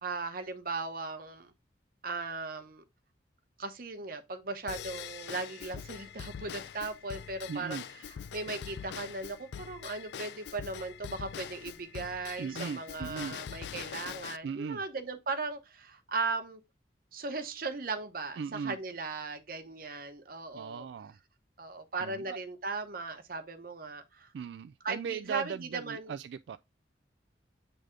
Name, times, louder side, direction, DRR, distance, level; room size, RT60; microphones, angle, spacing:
voice 1, 0.0-1.5 2.0-2.8 3.6-7.8 8.1-16.6 17.1-20.9 21.6-24.3 24.8-26.1, right 3 dB, 55° right, 1.0 m, -37 dB
Drum kit / Drum / Bell, 4.7-14.4, left 8 dB, 70° left, 0.3 m, -43 dB
voice 2, 7.5-7.9 12.4-13.4 14.4-14.8 18.4-18.8 20.5-21.2 22.0-22.4 24.3-26.6, right 6 dB, 80° right, 0.3 m, -38 dB
7.9 x 3.4 x 3.7 m
head